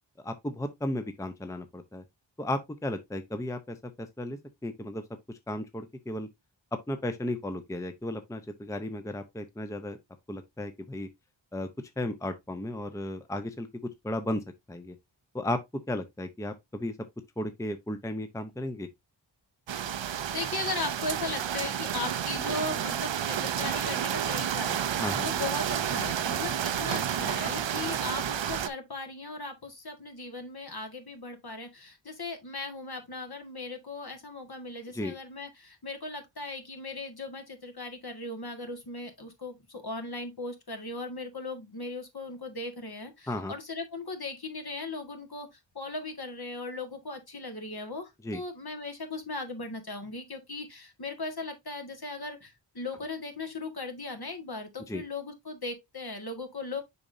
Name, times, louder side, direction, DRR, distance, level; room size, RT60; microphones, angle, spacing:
voice 1, 0.2-2.0 2.4-5.0 5.3-6.3 6.9-10.0 10.3-11.1 11.5-11.7 12.0-13.7 14.0-15.0 15.3-15.6 15.9-16.9 17.4-18.9 25.0-25.3 34.9-35.1 43.3-43.5 48.2-48.4 54.9-55.0, left 1 dB, 5° left, 0.7 m, -34 dB
sound 1, 19.7-28.7, right 9 dB, 75° right, 0.6 m, -30 dB
voice 2, 20.3-56.8, left 3 dB, 55° left, 1.8 m, -38 dB
6.9 x 5.2 x 2.6 m
wide cardioid pair, 55°, 45 cm